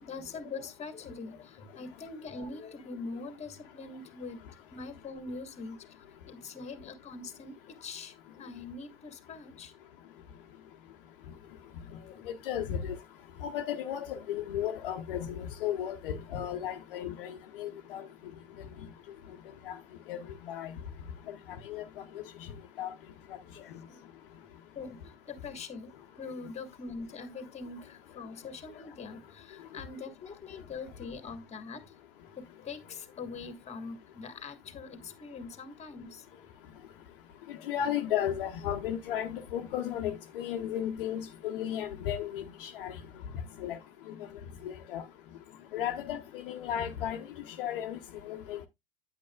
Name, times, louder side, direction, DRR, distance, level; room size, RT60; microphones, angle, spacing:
voice 1, 0.0-4.4 4.7-5.8 6.2-9.7 11.8-12.3 23.3-24.1 24.7-31.9 32.4-36.5 36.8-36.9 43.1-43.2, left 4 dB, 20° left, 1.5 m, -43 dB
voice 2, 12.3-13.0 13.4-18.0 19.7-19.8 20.1-20.2 20.5-20.7 21.7-21.8 22.8-22.9 37.7-42.9 43.6-43.8 44.9-45.0 45.7-47.2 47.6-48.0 48.3-48.7, left 10 dB, 65° left, 0.9 m, -34 dB
9.3 x 8.4 x 2.2 m
figure-of-eight pair, 80°, 30 cm